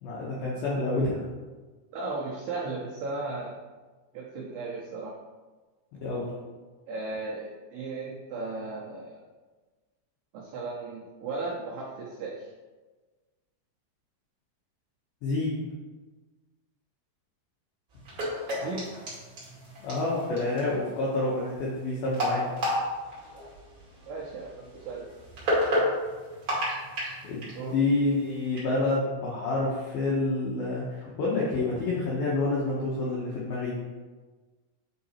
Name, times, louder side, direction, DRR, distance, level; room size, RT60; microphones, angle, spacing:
voice 1, 0.0-1.2 6.0-6.3 15.2-15.5 19.8-22.5 27.2-33.8, left 2 dB, 80° left, -6 dB, 2.1 m, -28 dB
voice 2, 1.9-3.6 4.1-5.1 6.9-9.2 10.3-12.5 18.5-18.9 24.1-25.1 27.5-27.8, right 3 dB, 85° right, -4 dB, 2.2 m, -36 dB
sound 1, 17.9-28.6, equal, 40° right, 2.0 m, -32 dB
8.7 x 3.8 x 4.3 m, 1.3 s
omnidirectional pair, 5.9 m